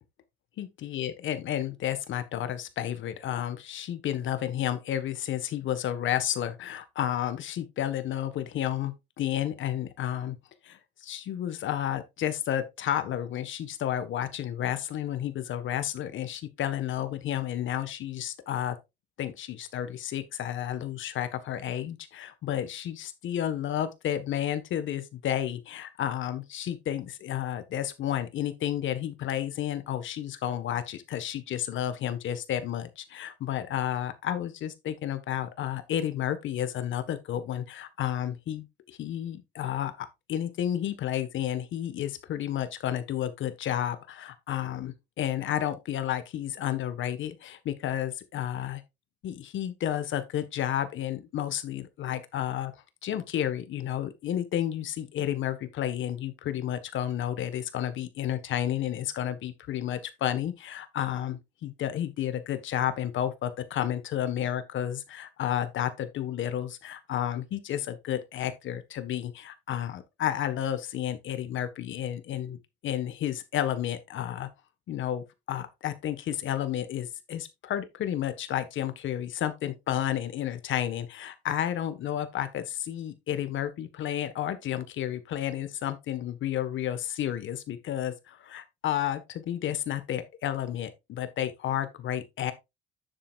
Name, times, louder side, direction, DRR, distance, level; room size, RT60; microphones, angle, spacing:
voice 1, 0.6-10.4 10.6-18.8 19.2-48.8 49.2-52.7 53.0-74.5 74.9-92.5, left 11 dB, 75° left, 1.5 m, -31 dB
9.8 x 7.4 x 2.5 m
cardioid pair, 90°, 20 cm